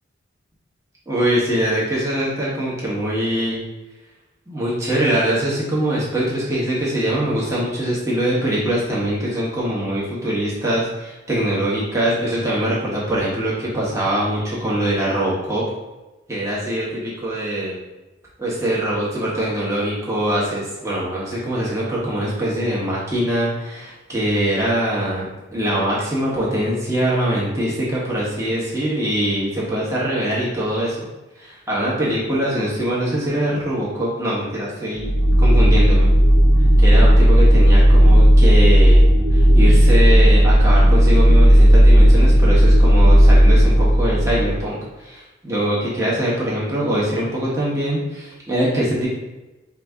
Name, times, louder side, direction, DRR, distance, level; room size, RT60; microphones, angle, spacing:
voice 1, 1.1-3.6 4.5-15.6 16.3-17.8 18.4-31.1 31.4-35.1 35.4-36.1 36.8-39.0 39.3-49.1, right 1 dB, 15° right, -7 dB, 1.2 m, -23 dB
sound 1, 35.0-44.6, equal, 80° right, 0.6 m, -12 dB
4.9 x 2.7 x 3.5 m, 1.1 s
head